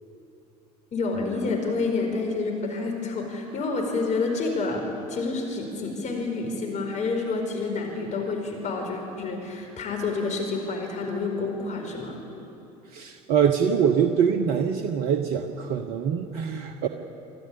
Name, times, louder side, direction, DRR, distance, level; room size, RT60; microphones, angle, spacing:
voice 1, 0.9-4.8 5.1-12.2, left 3 dB, 35° left, 1 dB, 4.8 m, -28 dB
voice 2, 12.9-16.9, right 7 dB, 55° right, 7 dB, 1.2 m, -24 dB
26.0 x 13.5 x 8.7 m, 2.8 s
hypercardioid pair, 70°, 20 cm